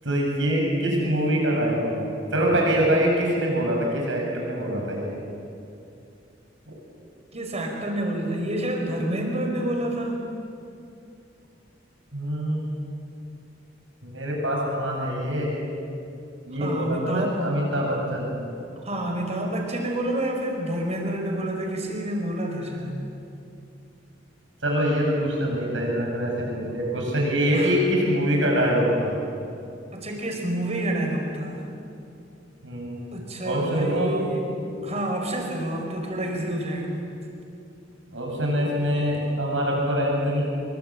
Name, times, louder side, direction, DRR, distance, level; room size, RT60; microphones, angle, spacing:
voice 1, 0.0-5.1 6.7-6.8 12.1-12.8 14.0-15.5 16.5-18.5 24.6-29.1 32.6-33.0 33.4-34.1 38.1-40.4, equal, 80° right, -1 dB, 7.9 m, -24 dB
voice 2, 7.3-10.2 16.6-17.5 18.8-22.9 27.5-27.7 29.9-31.6 33.1-34.5 34.8-37.0, right 1 dB, 35° right, 2 dB, 5.2 m, -28 dB
25.5 x 23.5 x 8.9 m, 2.6 s
head